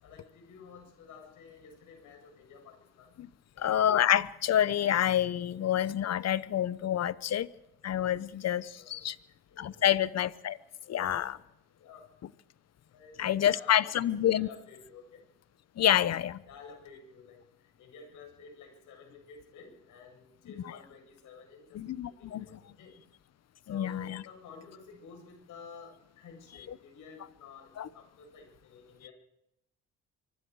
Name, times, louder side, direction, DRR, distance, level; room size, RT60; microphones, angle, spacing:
voice 1, 0.0-3.1 3.5-3.9 8.7-9.0 9.5-9.9 10.8-11.2 11.8-12.1 12.9-15.2 16.5-17.4 17.8-21.8 22.2-23.1 23.7-29.1, left 5 dB, 80° left, 7.8 m, -51 dB
voice 2, 3.6-7.5 7.8-9.2 9.6-10.6 10.9-11.4 13.2-14.5 15.8-16.4 21.7-22.5 23.7-24.2 27.8-27.9, left 11 dB, 60° left, 1.0 m, -28 dB
24.5 x 24.0 x 4.8 m
cardioid pair, 90°, 30 cm